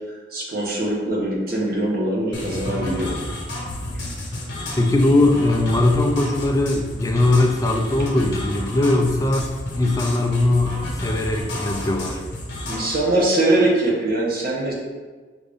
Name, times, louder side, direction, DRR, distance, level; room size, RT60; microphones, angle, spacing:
voice 1, 0.1-3.1 12.6-14.7, right 1 dB, 55° right, -4 dB, 1.0 m, -22 dB
sound 1, 2.3-13.0, left 1 dB, 65° left, 1.0 m, -31 dB
voice 2, 4.8-12.2, left 2 dB, 20° left, 2 dB, 0.4 m, -20 dB
5.1 x 2.5 x 3.4 m, 1.4 s
head